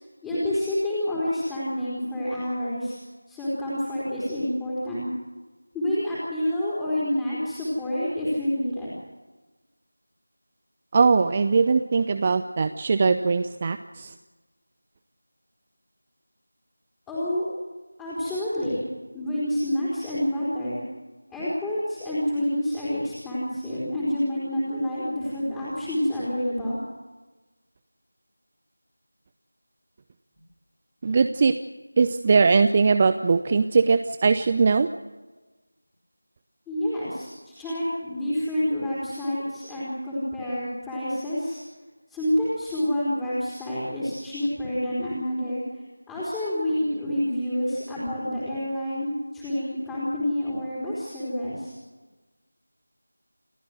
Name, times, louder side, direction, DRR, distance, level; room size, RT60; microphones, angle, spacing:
voice 1, 0.2-3.0 3.3-5.1 5.7-8.9 17.1-17.5 18.0-18.8 19.1-20.8 21.3-26.8 36.7-41.6 42.1-51.7, left 1 dB, 5° left, -11 dB, 4.0 m, -28 dB
voice 2, 10.9-14.1 31.0-31.5 32.0-34.9, right 4 dB, 25° right, 10 dB, 0.6 m, -20 dB
29.0 x 13.5 x 7.9 m, 1.2 s
figure-of-eight pair, 170°, 0 cm